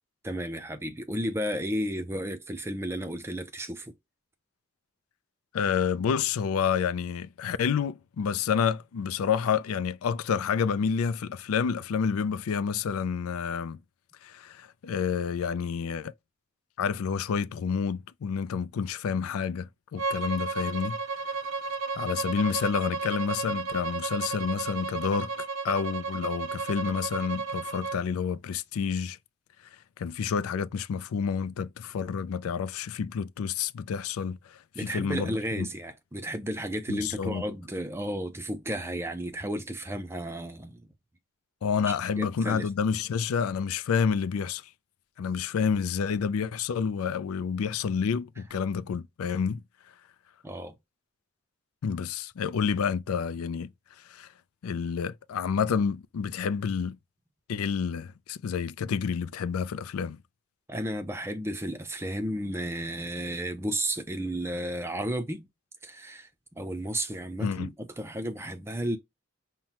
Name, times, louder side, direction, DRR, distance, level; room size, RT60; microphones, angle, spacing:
voice 1, 0.2-3.9 34.7-40.9 41.9-42.7 50.4-50.8 60.7-65.5 65.8-69.0, right 1 dB, 10° right, 0.5 m, -33 dB
voice 2, 5.5-13.8 14.2-16.1 16.8-21.0 21.9-29.2 30.0-35.7 36.9-37.4 41.6-44.6 45.2-49.6 51.8-53.7 54.1-54.3 54.6-57.0 57.5-60.2 67.4-67.7, left 6 dB, 90° left, 0.4 m, -29 dB
Bowed string instrument, 20.0-28.0, right 4 dB, 65° right, 0.5 m, -33 dB
5.6 x 2.1 x 2.9 m
head